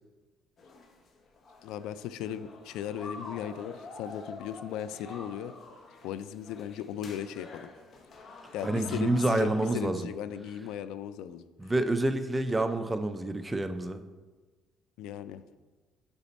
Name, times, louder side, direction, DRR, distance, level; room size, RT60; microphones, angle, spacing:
sound 1, 0.6-9.8, left 3 dB, 45° left, 0.8 m, -48 dB
voice 1, 1.6-5.5 6.0-7.7 8.5-11.4 15.0-15.4, left 10 dB, 85° left, 14 dB, 0.3 m, -37 dB
voice 2, 8.6-10.1 11.6-14.0, right 2 dB, 15° right, 9 dB, 0.4 m, -28 dB
6.9 x 5.1 x 4.1 m, 1.3 s
cardioid pair, 125°, 0 cm